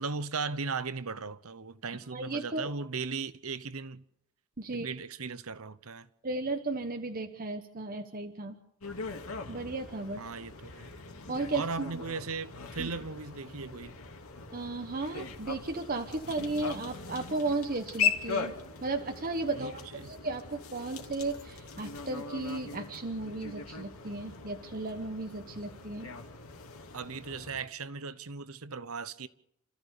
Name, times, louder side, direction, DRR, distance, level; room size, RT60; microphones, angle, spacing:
voice 1, 0.0-4.0 4.7-6.1 10.2-10.9 11.5-14.0 19.5-20.1 26.9-29.3, right 4 dB, 80° right, 1.0 m, -37 dB
voice 2, 2.1-2.7 4.6-4.9 6.2-8.6 9.5-10.2 11.3-12.0 12.8-12.9 14.5-18.5 18.8-19.8 20.1-26.1, right 2 dB, 45° right, 1.2 m, -35 dB
sound 1, 8.8-27.6, left 5 dB, 75° left, 2.6 m, -39 dB
29.5 x 14.5 x 6.9 m
head